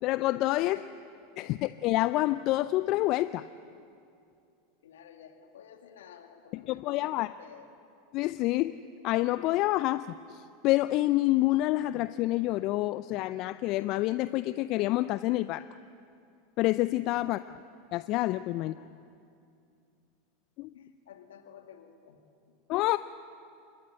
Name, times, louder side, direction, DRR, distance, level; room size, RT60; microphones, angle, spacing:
voice 1, 0.0-0.8 1.4-3.5 6.7-7.3 8.1-8.7 9.0-15.7 16.6-17.6 17.9-18.7 20.6-20.7 22.7-23.0, left 17 dB, 50° left, 14 dB, 0.5 m, -28 dB
voice 2, 0.6-1.0 1.4-1.9 4.8-7.7 17.2-17.9 18.6-19.0 20.7-22.2, left 8 dB, 75° left, 5 dB, 2.2 m, -53 dB
28.0 x 13.5 x 10.0 m, 2.5 s
hypercardioid pair, 90°, 0 cm